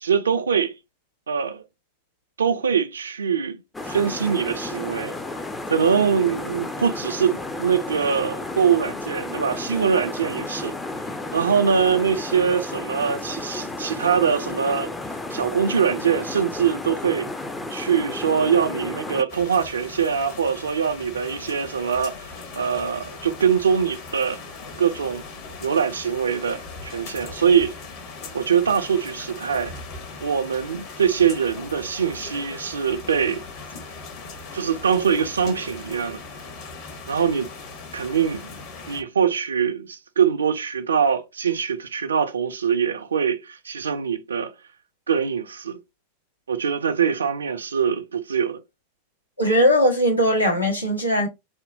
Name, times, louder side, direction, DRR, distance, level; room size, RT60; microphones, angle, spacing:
voice 1, 0.0-0.7 1.3-1.6 2.4-3.6 3.8-5.1 5.7-10.8 11.3-14.9 15.3-17.3 17.7-24.4 24.8-25.2 25.6-27.8 28.3-29.7 30.2-33.4 34.5-36.2 37.1-37.5 37.9-38.5 38.9-44.5 45.1-45.8 46.5-48.6, right 7 dB, 70° right, 0.5 m, -23 dB
sound 1, 3.7-19.2, left 2 dB, 10° left, 0.4 m, -32 dB
sound 2, 19.3-39.0, left 4 dB, 45° left, 0.9 m, -39 dB
voice 2, 49.4-51.3, equal, 90° left, 1.1 m, -19 dB
3.6 x 2.1 x 2.5 m
figure-of-eight pair, 90°, 0 cm